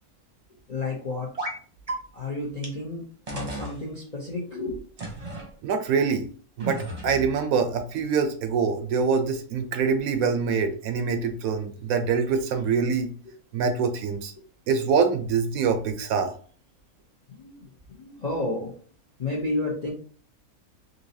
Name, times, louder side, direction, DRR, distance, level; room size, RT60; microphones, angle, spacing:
voice 1, 0.7-1.3 2.1-3.0 3.3-4.8 17.4-17.6 17.9-18.7 19.2-19.9, left 2 dB, 45° left, -2 dB, 0.5 m, -31 dB
sound 1, 1.4-1.6 1.9-2.0 2.6-2.7 3.3-3.7 5.0-5.5 6.6-7.3, right 1 dB, 30° right, 0.8 m, -33 dB
voice 2, 5.6-6.3 6.6-13.1 13.5-14.3 14.7-16.3, right 5 dB, 75° right, 7 dB, 1.0 m, -25 dB
3.9 x 2.7 x 2.6 m, 0.43 s
omnidirectional pair, 1.6 m